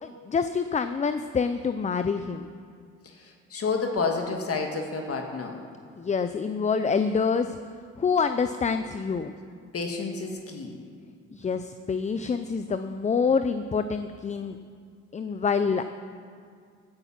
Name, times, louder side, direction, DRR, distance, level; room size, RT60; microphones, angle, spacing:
voice 1, 0.0-2.5 6.0-7.6 8.0-9.3 11.3-14.6 15.1-15.9, left 5 dB, 25° left, 10 dB, 0.5 m, -26 dB
voice 2, 3.0-5.5 9.7-10.8, left 4 dB, 50° left, 2 dB, 1.5 m, -30 dB
16.5 x 8.6 x 5.8 m, 2.2 s
cardioid pair, 90°, 30 cm